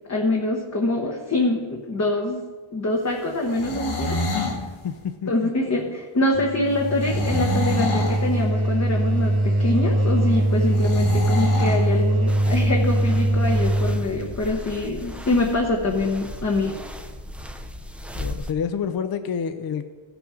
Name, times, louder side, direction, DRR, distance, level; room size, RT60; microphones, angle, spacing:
voice 1, 0.1-2.4 2.7-4.2 5.3-16.8, left 2 dB, 35° left, 0 dB, 1.0 m, -24 dB
sound 1, 3.4-4.6 7.0-8.2 10.7-11.8, left 2 dB, 85° left, 2.2 m, -27 dB
voice 2, 4.8-5.5 18.1-20.0, left 7 dB, 50° left, 9 dB, 0.5 m, -28 dB
sound 2, 6.3-14.1, right 1 dB, 85° right, 2.2 m, -22 dB
sound 3, 12.3-18.5, left 1 dB, 5° right, 0.5 m, -36 dB
16.5 x 6.1 x 4.9 m, 1.4 s
wide cardioid pair, 165°, 48 cm